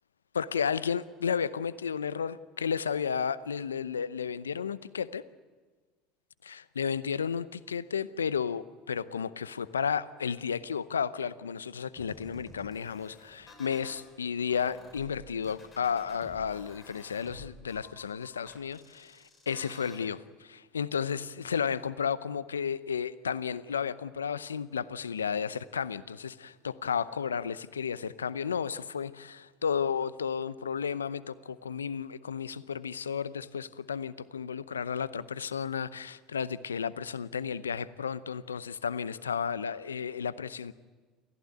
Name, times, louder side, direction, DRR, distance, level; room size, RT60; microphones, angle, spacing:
voice 1, 0.3-5.2 6.4-40.7, left 7 dB, 90° left, 18 dB, 0.7 m, -33 dB
sound 1, 12.0-14.0 14.5-20.0, left 2 dB, 30° left, 7.3 m, -52 dB
28.5 x 15.0 x 9.5 m, 1.4 s
hypercardioid pair, 70°, 0 cm